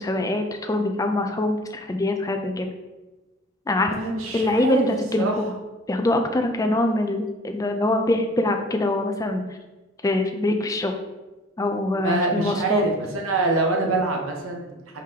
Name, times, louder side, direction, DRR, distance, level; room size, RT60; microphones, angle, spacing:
voice 1, 0.0-2.7 3.7-3.9 4.3-5.5 5.9-9.4 10.0-10.9 11.6-12.8, left 2 dB, 15° left, 5 dB, 0.3 m, -24 dB
voice 2, 3.9-4.9 5.2-5.4 12.0-14.8, right 2 dB, 80° right, 2 dB, 0.8 m, -24 dB
4.9 x 3.6 x 2.8 m, 1.1 s
head